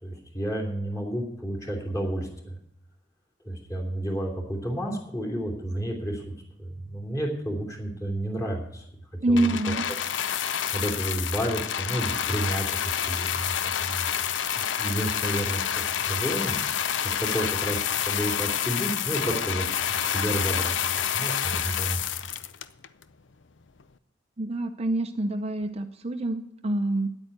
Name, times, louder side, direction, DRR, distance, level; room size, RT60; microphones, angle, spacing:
voice 1, 0.0-2.3 3.4-6.2 6.6-8.8 9.3-9.5 10.7-14.1 14.4-14.5 14.8-16.5 17.1-22.0, right 1 dB, 20° left, -1 dB, 3.0 m, -31 dB
voice 2, 9.2-9.8 24.4-27.1, right 1 dB, 35° right, 7 dB, 0.6 m, -26 dB
sound 1, 9.4-23.0 23.8-23.9, left 9 dB, 75° left, 0.6 m, -28 dB
9.7 x 8.8 x 9.1 m, 0.75 s
head